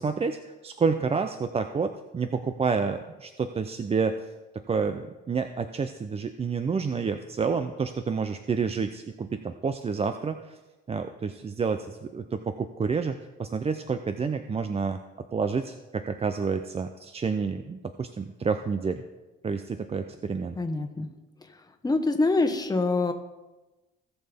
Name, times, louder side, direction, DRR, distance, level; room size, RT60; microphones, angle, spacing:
voice 1, 0.0-4.2 4.5-10.6 10.9-15.0 15.3-19.0 19.4-20.6, right 5 dB, 30° right, 9 dB, 0.6 m, -29 dB
voice 2, 20.6-21.1 21.8-23.1, left 3 dB, 20° left, 6 dB, 1.3 m, -25 dB
18.0 x 6.7 x 3.5 m, 1.1 s
cardioid pair, 90°, 20 cm